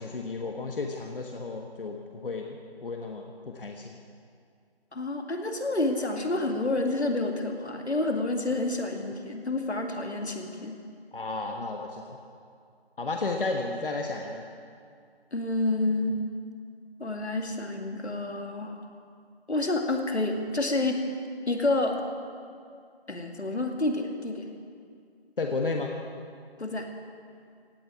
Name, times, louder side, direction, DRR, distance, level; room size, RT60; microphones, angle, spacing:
voice 1, 0.0-2.0 2.2-4.0 11.1-12.2 13.0-14.5 25.4-25.9, left 3 dB, 55° left, 2 dB, 1.3 m, -33 dB
voice 2, 4.9-10.8 15.3-16.2 17.0-18.9 19.5-21.0 21.5-22.0 23.1-24.5 26.6-26.9, left 2 dB, 85° left, 3 dB, 2.3 m, -29 dB
16.5 x 8.0 x 9.4 m, 2.3 s
figure-of-eight pair, 165°, 32 cm